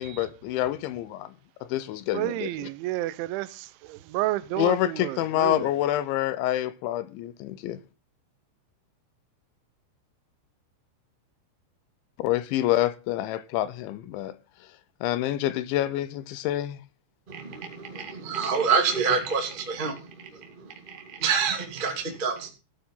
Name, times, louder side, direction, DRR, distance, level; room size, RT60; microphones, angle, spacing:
voice 1, 0.0-1.3 1.6-2.5 4.6-7.8 12.2-14.7 15.0-16.8, left 14 dB, 80° left, 2.9 m, -27 dB
voice 2, 2.1-5.7, right 16 dB, 80° right, 3.1 m, -31 dB
voice 3, 17.3-20.0 20.6-22.5, right 5 dB, 20° right, 1.5 m, -27 dB
15.5 x 9.0 x 5.6 m
omnidirectional pair, 5.7 m